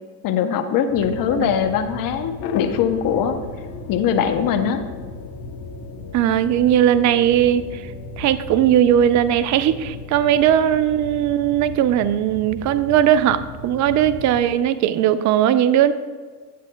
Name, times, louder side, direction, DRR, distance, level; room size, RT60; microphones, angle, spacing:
voice 1, 0.2-3.4 3.9-4.8, left 8 dB, 45° left, 8 dB, 0.8 m, -21 dB
sound 1, 0.9-14.6, left 2 dB, 5° right, 2.2 m, -37 dB
sound 2, 2.4-11.5, left 7 dB, 85° left, 0.7 m, -37 dB
voice 2, 6.1-7.8 8.2-15.9, right 10 dB, 40° right, 13 dB, 0.5 m, -18 dB
10.0 x 8.1 x 2.3 m, 1.5 s
hypercardioid pair, 85°, 48 cm